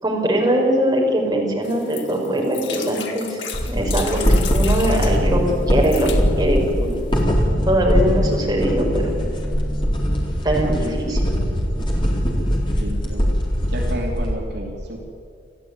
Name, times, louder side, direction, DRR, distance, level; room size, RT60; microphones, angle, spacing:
voice 1, 0.0-3.4 3.7-4.2 4.5-5.4 5.7-6.1 6.4-6.9 7.6-9.2 10.4-11.3, right 1 dB, 20° right, -1 dB, 5.1 m, -21 dB
sound 1, 1.6-5.2 5.7-6.2 6.9-7.0 7.2-7.3, left 8 dB, 90° left, 3.0 m, -33 dB
sound 2, 3.5-14.4, equal, 25° left, 4.2 m, -21 dB
sound 3, 5.1-10.3, equal, 75° left, 6.4 m, -32 dB
voice 2, 12.8-13.3 13.6-15.0, equal, 60° right, 0 dB, 2.9 m, -31 dB
29.0 x 14.0 x 9.5 m, 2.5 s
head